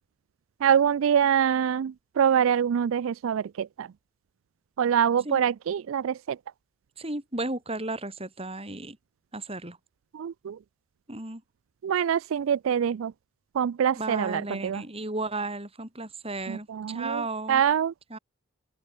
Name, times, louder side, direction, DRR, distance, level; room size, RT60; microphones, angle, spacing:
voice 1, 0.6-3.9 4.8-6.1 10.1-10.5 11.8-13.1 13.6-14.8 16.5-17.2 17.5-17.9, right 8 dB, 70° right, 0.3 m, -24 dB
voice 2, 7.0-9.0 9.3-9.8 11.1-11.4 13.9-17.6 18.1-18.2, right 2 dB, 30° right, 5.7 m, -34 dB
head